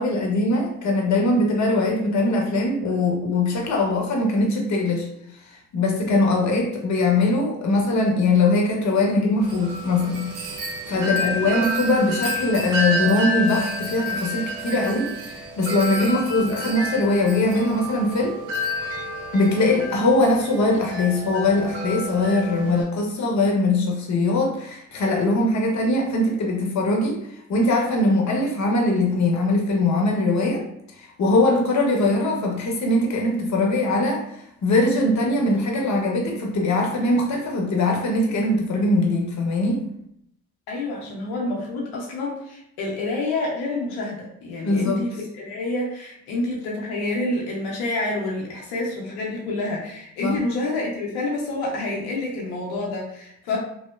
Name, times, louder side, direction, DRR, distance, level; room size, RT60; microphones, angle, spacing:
voice 1, 0.0-5.1 5.5-18.4 19.3-27.2 27.5-30.6 31.0-34.2 34.6-39.8 44.6-45.0 50.2-50.4, left 2 dB, 45° left, 0 dB, 0.8 m, -21 dB
Wind chime, 9.4-22.8, equal, 80° right, 0.6 m, -30 dB
voice 2, 10.9-11.5 16.3-16.5 40.7-45.1 45.3-53.6, left 2 dB, 85° left, -3 dB, 0.7 m, -28 dB
2.8 x 2.0 x 2.2 m, 0.74 s
supercardioid pair, 55°, 38 cm